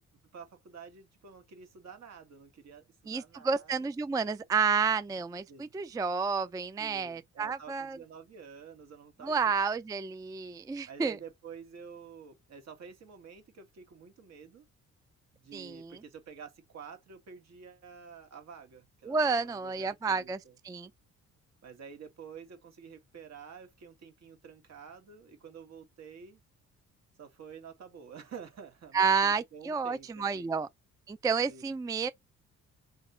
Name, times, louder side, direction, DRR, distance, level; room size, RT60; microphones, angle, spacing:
voice 1, 0.3-3.9 5.5-5.7 6.8-9.4 10.9-14.7 15.3-20.6 21.6-26.4 27.2-30.5 31.4-31.7, right 6 dB, 60° right, 1.8 m, -49 dB
voice 2, 3.1-8.0 9.2-11.2 15.5-16.0 19.0-20.4 20.6-20.9 28.9-30.7 31.1-32.1, right 5 dB, 10° right, 0.3 m, -30 dB
4.1 x 2.9 x 4.4 m
cardioid pair, 90°, 30 cm